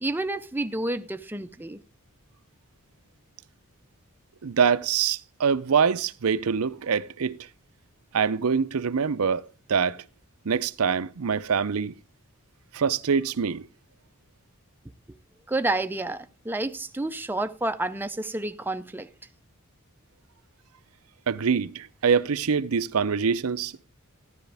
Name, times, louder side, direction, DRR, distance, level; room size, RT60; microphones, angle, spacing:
voice 1, 0.0-1.8 15.5-19.1, right 2 dB, 10° right, 0.5 m, -29 dB
voice 2, 4.4-7.4 8.1-10.0 10.5-11.9 12.7-13.7 21.3-23.9, right 6 dB, 85° right, 0.6 m, -24 dB
13.0 x 11.0 x 3.4 m
head